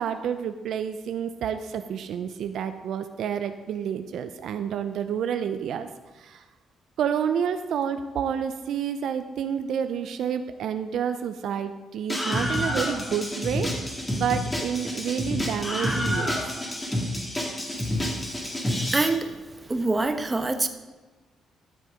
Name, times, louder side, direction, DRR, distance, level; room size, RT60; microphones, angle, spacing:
voice 1, 0.0-5.9 6.2-6.4 7.0-16.4, right 8 dB, 75° right, 9 dB, 0.6 m, -29 dB
Screaming, 12.1-19.1, left 1 dB, 15° left, 2.1 m, -28 dB
voice 2, 18.9-19.3 19.7-20.7, right 2 dB, 20° right, 7 dB, 0.9 m, -24 dB
12.0 x 6.4 x 5.1 m, 1.2 s
cardioid pair, 90°, 0 cm